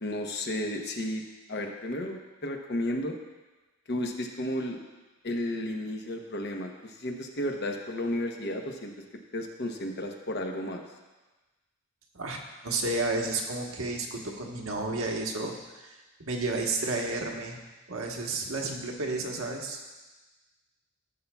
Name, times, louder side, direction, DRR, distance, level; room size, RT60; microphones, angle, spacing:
voice 1, 0.0-1.2 1.5-3.2 3.9-4.8 5.2-8.9 9.3-10.8, left 1 dB, 50° left, 3 dB, 0.9 m, -33 dB
voice 2, 12.1-17.6 17.9-19.8, right 2 dB, 75° right, 1 dB, 1.2 m, -32 dB
15.0 x 7.0 x 2.3 m, 1.2 s
head